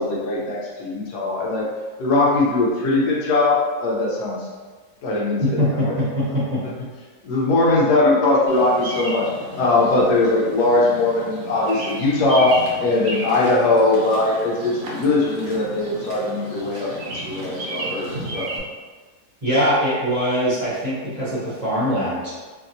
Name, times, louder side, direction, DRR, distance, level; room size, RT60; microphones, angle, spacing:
voice 1, 0.0-1.7 2.0-4.5 5.0-5.9 6.6-6.7 7.2-9.3 9.6-18.5, left 2 dB, 85° left, -4 dB, 1.2 m, -20 dB
voice 2, 5.6-6.4 19.4-22.3, equal, 30° right, -11 dB, 0.9 m, -22 dB
Bird vocalization bird call bird song, 8.5-18.6, right 1 dB, 65° right, 0.9 m, -34 dB
2.9 x 2.8 x 2.6 m, 1.4 s
omnidirectional pair, 1.7 m